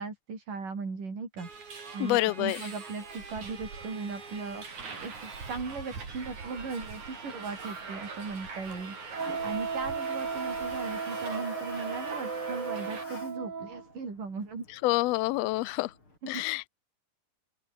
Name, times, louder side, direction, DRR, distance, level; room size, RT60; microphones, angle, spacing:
voice 1, 0.0-1.5 1.9-4.6 5.0-14.7 16.2-16.4, right 4 dB, 80° right, 7.9 m, -38 dB
Subway metro underground, 1.4-13.0, right 4 dB, 65° right, 6.4 m, -42 dB
voice 2, 2.0-2.6 14.8-15.9 16.3-16.7, left 19 dB, 75° left, 1.5 m, -27 dB
Toilet flush, 3.9-16.2, left 2 dB, 40° left, 8.9 m, -51 dB
Wind instrument woodwind instrument, 9.1-13.9, right 5 dB, 35° right, 1.6 m, -36 dB
open air
omnidirectional pair, 3.7 m